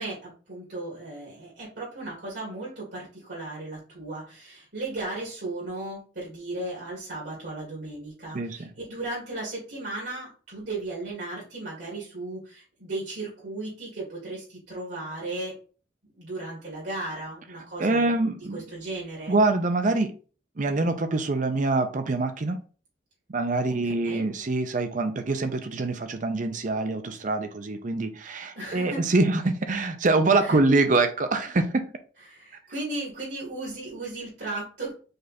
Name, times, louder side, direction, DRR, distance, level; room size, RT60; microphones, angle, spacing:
voice 1, 0.0-15.6 16.2-18.1 18.5-19.3 23.8-24.2 28.6-29.0 30.4-30.6 32.3-34.9, right 2 dB, 70° right, -5 dB, 2.3 m, -36 dB
voice 2, 8.3-8.7 17.8-18.6 19.3-20.1 20.6-22.6 23.3-31.9, right 3 dB, 45° right, 8 dB, 0.6 m, -25 dB
5.2 x 2.4 x 4.1 m, 0.38 s
head